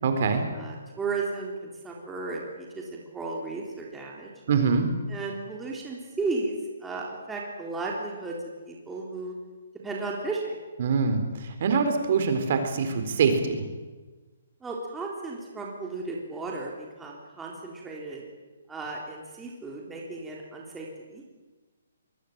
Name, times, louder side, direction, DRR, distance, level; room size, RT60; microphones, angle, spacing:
voice 1, 0.0-0.4 4.5-4.9 10.8-13.6, right 5 dB, 45° right, 7 dB, 4.2 m, -24 dB
voice 2, 0.5-4.3 5.1-6.6 6.8-8.4 8.6-9.4 9.8-10.5 14.6-18.2 18.7-21.2, right 3 dB, 5° right, -2 dB, 3.4 m, -34 dB
25.5 x 21.0 x 9.1 m, 1.3 s
hypercardioid pair, 170°, 0 cm